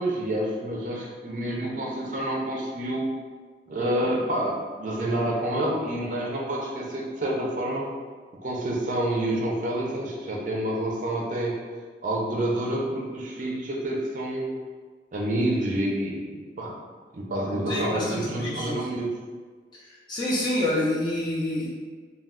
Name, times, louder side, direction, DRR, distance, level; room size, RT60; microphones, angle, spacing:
voice 1, 0.0-3.1 3.7-7.9 8.4-11.6 12.0-14.6 15.1-16.3 16.6-16.8 17.1-19.1, right 1 dB, 45° right, -2 dB, 0.4 m, -28 dB
voice 2, 17.7-18.8 19.9-21.7, left 1 dB, 25° left, -6 dB, 0.4 m, -27 dB
2.2 x 2.2 x 3.5 m, 1.5 s
head